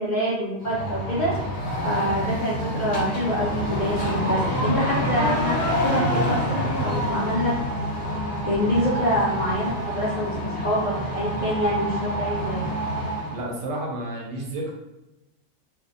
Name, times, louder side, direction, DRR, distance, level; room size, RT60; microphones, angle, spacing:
voice 1, 0.0-1.5 1.8-7.5 8.5-12.6, equal, 80° left, -6 dB, 0.4 m, -26 dB
sound 1, 0.6-13.4, equal, 50° left, 0.9 m, -27 dB
voice 2, 13.3-14.7, right 1 dB, 70° right, -1 dB, 0.8 m, -31 dB
2.6 x 2.1 x 2.5 m, 0.97 s
omnidirectional pair, 1.5 m